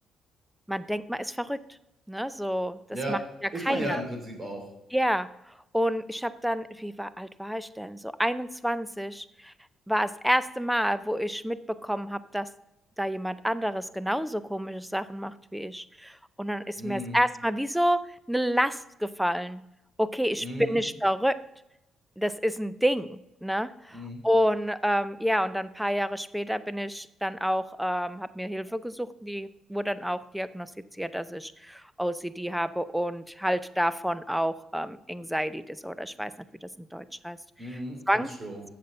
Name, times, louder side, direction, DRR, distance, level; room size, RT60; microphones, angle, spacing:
voice 1, 0.7-1.6 2.1-2.8 3.1-3.2 3.6-4.0 4.9-5.3 5.7-9.5 9.9-12.5 13.0-19.6 20.0-21.4 22.2-30.7 31.0-36.3 36.6-37.4 38.1-38.3, equal, ahead, 15 dB, 0.5 m, -29 dB
voice 2, 3.5-4.6 16.8-17.2 20.4-20.8 23.9-24.2 37.6-38.6, right 1 dB, 35° right, 3 dB, 3.1 m, -35 dB
7.9 x 6.8 x 6.6 m, 0.91 s
cardioid pair, 90°, 0 cm